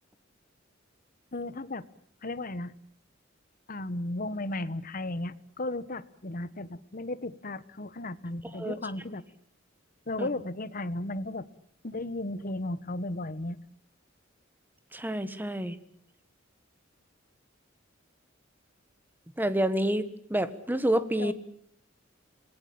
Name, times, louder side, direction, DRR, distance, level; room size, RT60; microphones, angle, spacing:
voice 1, 1.3-1.9 2.2-2.7 3.7-9.2 10.1-11.5 11.8-13.6 21.2-21.3, left 2 dB, 45° left, 15 dB, 1.2 m, -35 dB
voice 2, 14.9-15.8 19.4-21.3, right 1 dB, 10° right, 12 dB, 1.5 m, -28 dB
27.0 x 20.0 x 8.7 m, 0.65 s
head